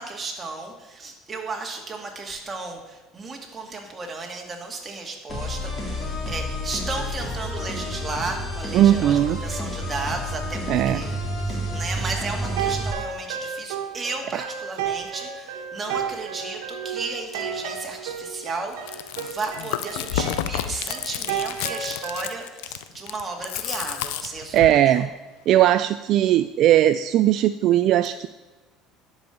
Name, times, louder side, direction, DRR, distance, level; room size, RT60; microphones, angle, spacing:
voice 1, 0.0-11.2 11.5-25.1, right 3 dB, 25° right, 1 dB, 2.1 m, -34 dB
sound 1, 5.3-12.9, equal, 30° left, 3.2 m, -30 dB
voice 2, 8.7-9.4 10.7-11.0 24.5-25.1 25.5-28.3, right 12 dB, 55° right, 11 dB, 0.3 m, -18 dB
sound 2, 12.1-22.3, right 7 dB, 90° right, 1.4 m, -33 dB
Chewing mastication, 18.7-24.8, left 12 dB, 85° left, 0.5 m, -31 dB
10.5 x 5.5 x 7.1 m, 1.1 s
supercardioid pair, 110°, 0 cm